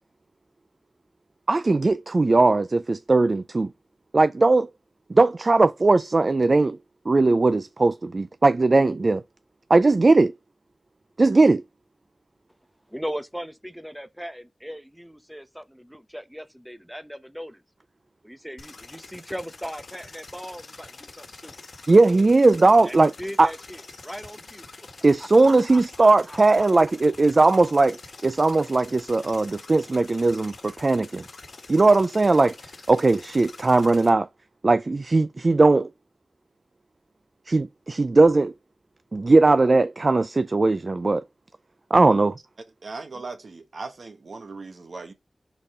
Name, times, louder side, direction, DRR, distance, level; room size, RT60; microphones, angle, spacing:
voice 1, 1.5-3.7 4.1-4.7 5.1-6.8 7.1-9.2 9.7-10.3 11.2-11.6 21.9-23.1 23.4-23.5 25.0-28.0 28.2-31.2 31.7-32.5 32.9-34.3 34.6-35.9 37.5-38.5 39.1-41.2 41.9-42.4, right 3 dB, 50° right, 0.4 m, -19 dB
voice 2, 12.9-17.6 18.2-21.5 22.8-24.9 25.2-26.6, equal, 5° right, 0.8 m, -38 dB
sound 1, 18.6-34.1, left 3 dB, 80° left, 1.4 m, -45 dB
voice 3, 42.8-45.1, right 3 dB, 75° right, 1.5 m, -38 dB
5.4 x 4.1 x 5.0 m
wide cardioid pair, 60°, 0 cm